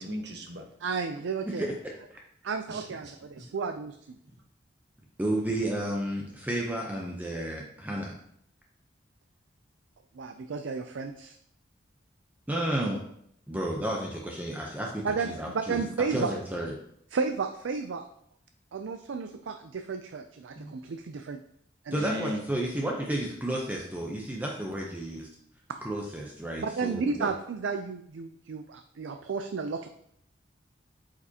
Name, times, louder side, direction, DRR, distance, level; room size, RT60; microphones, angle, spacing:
voice 1, 0.0-0.6 2.7-3.5 20.5-20.7 21.9-22.4, equal, 65° right, 3 dB, 1.1 m, -37 dB
voice 2, 0.8-1.6 2.4-4.2 10.1-11.4 15.0-16.3 17.1-18.1 18.7-21.4 21.8-22.0 26.6-29.9, right 5 dB, 90° right, 7 dB, 0.4 m, -33 dB
voice 3, 1.5-1.8 5.2-8.1 12.5-13.0 13.5-15.8 16.1-16.7 21.9-25.3 25.8-27.3, right 1 dB, 10° right, -1 dB, 0.7 m, -32 dB
8.1 x 5.0 x 2.8 m, 0.71 s
head